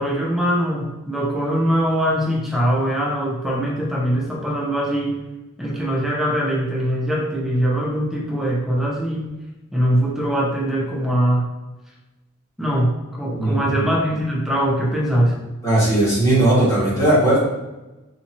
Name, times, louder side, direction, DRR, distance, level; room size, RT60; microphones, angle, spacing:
voice 1, 0.0-5.2 5.6-9.3 9.7-11.5 12.6-15.4, equal, ahead, -4 dB, 0.6 m, -22 dB
voice 2, 13.4-13.8 15.6-17.4, right 1 dB, 15° left, -9 dB, 1.3 m, -17 dB
2.9 x 2.7 x 2.5 m, 1.1 s
head